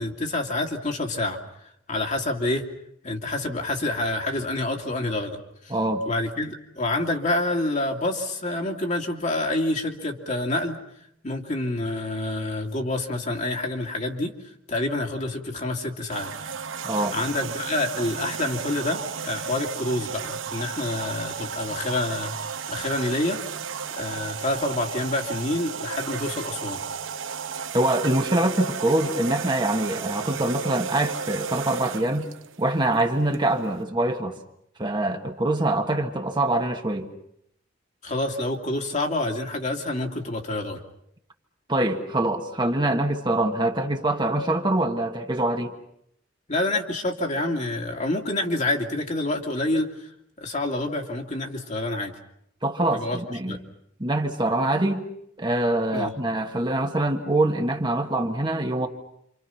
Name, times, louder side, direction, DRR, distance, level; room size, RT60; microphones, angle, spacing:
voice 1, 0.0-1.4 1.9-2.6 3.0-5.4 5.6-5.7 6.1-10.8 11.2-16.3 17.1-23.4 23.9-26.8 38.0-40.8 46.5-50.1 50.4-52.1 52.9-53.6 55.9-56.1, left 2 dB, 40° left, 1 dB, 2.6 m, -27 dB
voice 2, 5.7-6.0 16.8-17.2 27.7-32.2 32.6-34.4 34.8-37.1 41.7-45.7 52.6-53.6 54.0-55.1 55.4-58.9, right 1 dB, 25° right, 3 dB, 1.5 m, -24 dB
sound 1, 16.1-33.8, right 6 dB, 80° right, 1.0 m, -34 dB
28.5 x 26.5 x 5.8 m, 0.75 s
head